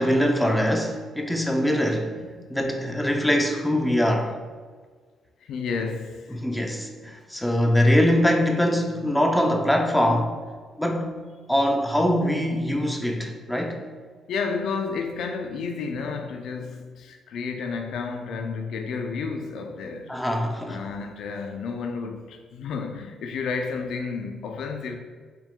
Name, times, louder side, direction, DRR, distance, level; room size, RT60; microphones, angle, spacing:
voice 1, 0.0-2.2 2.5-4.4 6.3-10.4 10.8-11.2 11.5-13.8 20.1-20.8, equal, 5° left, 0.6 m, -23 dB
voice 2, 2.2-2.6 2.9-3.1 5.4-6.7 7.0-7.2 14.3-20.2 20.7-25.0, left 5 dB, 75° left, 0.4 m, -32 dB
4.5 x 3.5 x 2.4 m
supercardioid pair, 70°, 0 cm